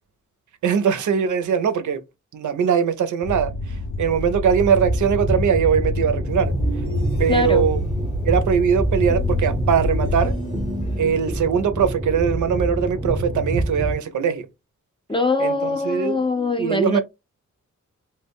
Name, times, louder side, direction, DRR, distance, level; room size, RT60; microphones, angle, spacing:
voice 1, 0.6-2.0 2.3-6.5 7.2-7.8 8.2-10.3 11.0-14.5 15.4-16.2 16.6-17.0, right 7 dB, 70° right, 0.5 m, -21 dB
sound 1, 3.2-10.3, left 2 dB, 90° left, 0.5 m, -27 dB
sound 2, 4.8-14.0, right 1 dB, 15° right, 0.7 m, -27 dB
sound 3, 6.6-7.9 9.1-11.3, equal, 65° left, 0.9 m, -36 dB
voice 2, 7.3-7.7 15.1-17.0, left 3 dB, 15° left, 0.4 m, -22 dB
2.1 x 2.0 x 3.4 m
wide cardioid pair, 115°, 31 cm